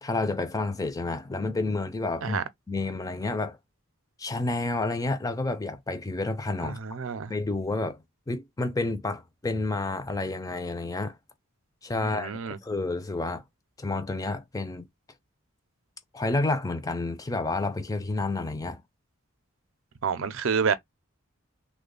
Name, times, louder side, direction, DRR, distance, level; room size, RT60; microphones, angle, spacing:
voice 1, 0.0-3.6 4.2-6.8 7.3-8.0 8.3-11.2 11.8-12.3 12.6-13.4 13.8-14.9 16.1-18.8, left 2 dB, 15° left, 0.4 m, -30 dB
voice 2, 6.6-7.3 11.9-12.6 20.0-20.7, right 6 dB, 70° right, 0.5 m, -28 dB
3.2 x 2.2 x 3.7 m
head